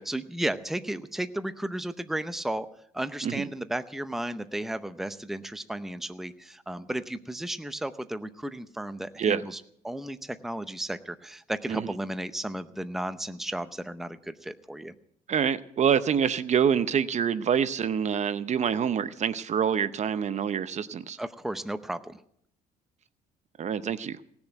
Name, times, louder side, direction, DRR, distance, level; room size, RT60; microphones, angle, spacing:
voice 1, 0.0-2.7 2.9-14.9 21.2-22.2, right 1 dB, ahead, 11 dB, 0.7 m, -34 dB
voice 2, 15.3-21.2 23.6-24.2, right 7 dB, 45° right, 14 dB, 0.7 m, -26 dB
18.5 x 7.0 x 9.1 m, 0.70 s
cardioid pair, 110°, 17 cm